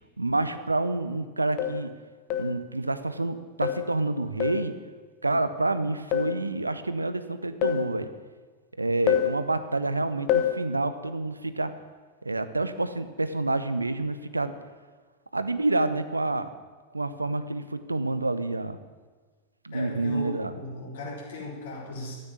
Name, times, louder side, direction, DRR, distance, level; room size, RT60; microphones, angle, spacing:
voice 1, 0.2-1.9 2.4-4.7 5.2-8.1 8.8-11.7 12.2-14.5 15.3-16.5 16.9-18.8 19.6-20.5, right 2 dB, 80° right, 11 dB, 1.0 m, -28 dB
sound 1, 0.6-0.7 1.6-1.9 2.3-2.6 3.6-3.9 4.4-4.7 6.1-6.4 7.6-7.9 9.1-9.4 10.3-10.6, left 10 dB, 40° left, 1.3 m, -26 dB
voice 2, 19.7-22.1, left 2 dB, 60° left, -3 dB, 5.3 m, -37 dB
13.5 x 9.3 x 10.0 m, 1.4 s
figure-of-eight pair, 90°, 0 cm